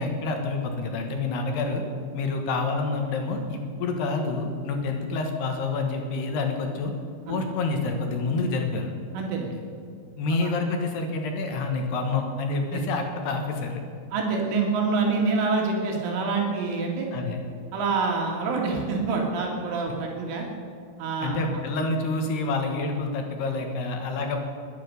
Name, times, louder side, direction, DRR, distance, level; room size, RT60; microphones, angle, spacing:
voice 1, 0.0-1.8 2.1-6.9 7.3-8.9 10.2-13.8 17.1-17.4 21.2-24.4, left 3 dB, 65° left, 4 dB, 3.1 m, -28 dB
voice 2, 9.1-9.6 10.3-10.5 12.7-12.8 14.1-17.1 17.7-20.5 21.0-21.4, right 4 dB, 80° right, 0 dB, 4.4 m, -26 dB
21.5 x 9.8 x 6.8 m, 2.3 s
omnidirectional pair, 5.6 m